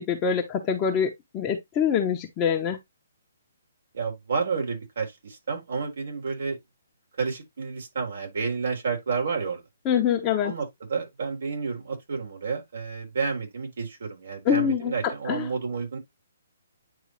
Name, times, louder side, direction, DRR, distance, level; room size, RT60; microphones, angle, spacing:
voice 1, 0.0-2.8 9.9-10.5 14.5-15.5, left 8 dB, 20° left, 1.0 m, -25 dB
voice 2, 3.9-6.6 7.2-9.6 10.4-16.0, right 5 dB, 70° right, 3.7 m, -30 dB
9.6 x 3.3 x 3.1 m
hypercardioid pair, 145°, 0 cm